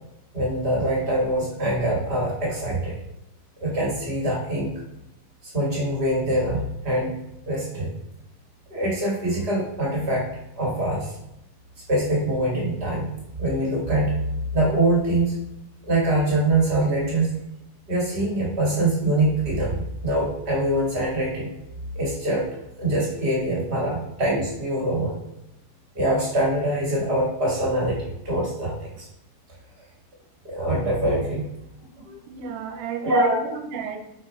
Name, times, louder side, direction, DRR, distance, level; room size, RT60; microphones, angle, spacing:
voice 1, 0.3-2.9 3.6-4.7 5.4-7.2 7.4-7.9 8.7-10.3 10.6-11.1 11.9-13.1 13.4-14.1 14.5-15.3 15.8-17.3 17.9-21.5 21.9-22.5 22.8-25.2 25.9-29.0 30.4-31.5 32.0-32.2 33.0-33.4, right 1 dB, 35° right, -3 dB, 1.8 m, -24 dB
voice 2, 32.3-34.1, right 6 dB, 80° right, 5 dB, 2.6 m, -33 dB
7.7 x 4.4 x 4.6 m, 0.86 s
omnidirectional pair, 5.3 m